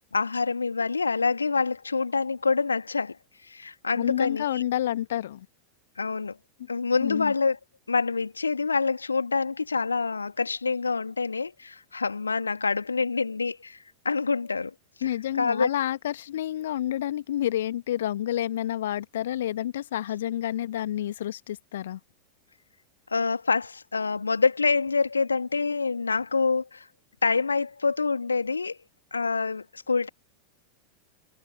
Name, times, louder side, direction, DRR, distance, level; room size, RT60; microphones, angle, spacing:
voice 1, 0.1-3.2 3.4-4.6 6.0-6.3 6.7-7.6 7.9-14.7 15.0-15.7 23.1-26.9 27.2-28.8 29.1-30.1, left 4 dB, 75° left, 1.4 m, -26 dB
voice 2, 4.0-5.5 7.0-7.3 15.0-22.0, left 12 dB, 60° left, 1.9 m, -29 dB
figure-of-eight pair, 90°, 0 cm